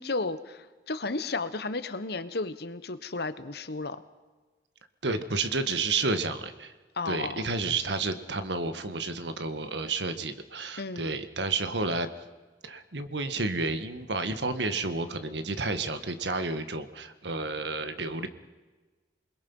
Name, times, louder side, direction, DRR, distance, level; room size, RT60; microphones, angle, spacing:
voice 1, 0.0-4.0 6.9-7.5 10.8-11.1, left 3 dB, 65° left, 12 dB, 1.2 m, -33 dB
voice 2, 5.0-6.7 7.0-12.1 12.6-18.3, right 3 dB, 75° right, 10 dB, 1.6 m, -31 dB
28.0 x 21.0 x 5.6 m, 1.3 s
head